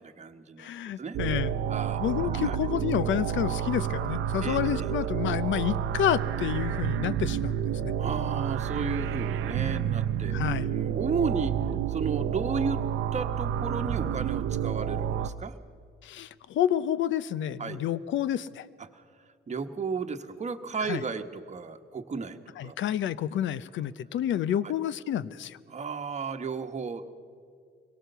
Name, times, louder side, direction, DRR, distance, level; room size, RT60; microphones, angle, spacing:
voice 1, 0.0-0.7 1.0-1.2 1.7-2.6 4.4-4.9 8.0-11.6 11.9-12.8 13.1-15.5 17.6-17.8 18.8-19.0 19.5-22.8 24.6-24.7 25.7-27.1, right 5 dB, 35° right, 6 dB, 1.3 m, -34 dB
voice 2, 0.6-1.5 2.0-7.6 7.8-7.9 10.3-10.7 16.0-18.7 20.9-21.0 22.6-25.6, left 10 dB, 75° left, 18 dB, 0.7 m, -29 dB
sound 1, 1.1-15.3, right 9 dB, 80° right, 0.6 m, -29 dB
23.0 x 18.0 x 6.8 m, 2.2 s
cardioid pair, 90°, 20 cm